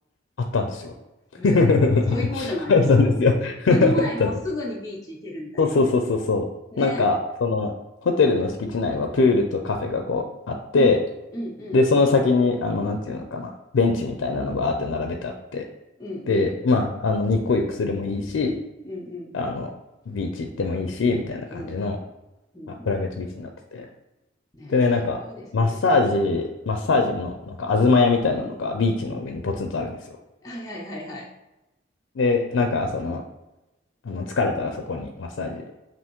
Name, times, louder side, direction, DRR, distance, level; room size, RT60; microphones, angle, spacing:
voice 1, 0.5-0.9 1.4-4.3 5.6-6.4 6.8-7.7 8.0-11.0 11.7-15.6 16.3-18.5 19.3-19.7 20.1-22.0 22.7-23.9 24.7-25.2 25.5-30.0 32.2-33.2 34.0-35.6, left 3 dB, 85° left, 4 dB, 0.4 m, -22 dB
voice 2, 1.4-1.8 2.1-2.8 3.4-5.6 6.7-7.0 10.8-11.0 11.3-11.8 16.0-16.6 18.8-19.4 21.5-21.8 22.5-23.0 24.5-25.8 30.4-31.3, equal, 20° left, -4 dB, 0.5 m, -33 dB
5.6 x 2.6 x 3.0 m, 1.0 s
head